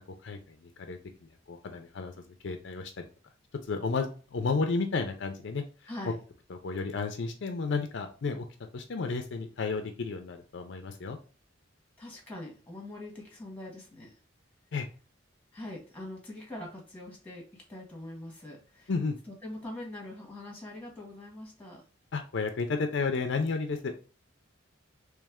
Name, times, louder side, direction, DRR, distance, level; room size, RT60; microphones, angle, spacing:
voice 1, 0.2-2.1 2.4-3.1 3.7-5.9 6.5-8.5 8.7-11.2 14.7-14.9 18.9-19.2 22.1-24.1, left 4 dB, 60° left, 6 dB, 0.5 m, -32 dB
voice 2, 5.9-6.2 12.0-14.2 15.5-18.9 19.3-21.8, left 1 dB, 5° left, -1 dB, 1.4 m, -43 dB
3.3 x 3.1 x 3.5 m, 0.37 s
head